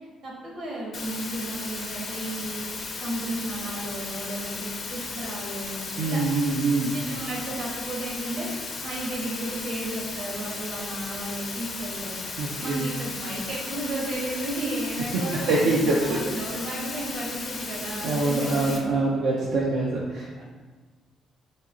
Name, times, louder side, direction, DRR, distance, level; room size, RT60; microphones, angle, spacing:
voice 1, 0.2-2.6 3.0-6.2 6.9-8.5 8.8-12.2 12.6-18.9 20.4-20.5, right 1 dB, 65° right, -3 dB, 1.1 m, -33 dB
sound 1, 0.9-18.8, left 4 dB, 50° left, 0.6 m, -35 dB
voice 2, 6.0-6.9 12.4-12.9 15.1-15.2 15.5-16.2 18.0-20.3, right 2 dB, 90° right, -4 dB, 0.4 m, -24 dB
4.2 x 2.9 x 2.4 m, 1.4 s
cardioid pair, 90°, 0 cm